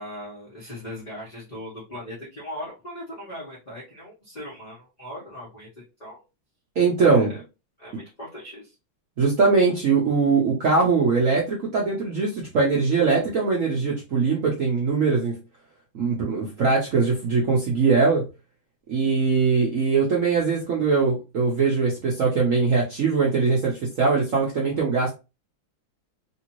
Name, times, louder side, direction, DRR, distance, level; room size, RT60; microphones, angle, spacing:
voice 1, 0.0-6.2 7.0-7.4 7.8-8.7, left 1 dB, 30° left, -7 dB, 0.9 m, -39 dB
voice 2, 6.8-7.3 9.2-15.3 15.9-18.2 18.9-25.1, right 4 dB, 75° right, -3 dB, 0.7 m, -21 dB
3.3 x 2.7 x 2.9 m, 0.29 s
omnidirectional pair, 2.3 m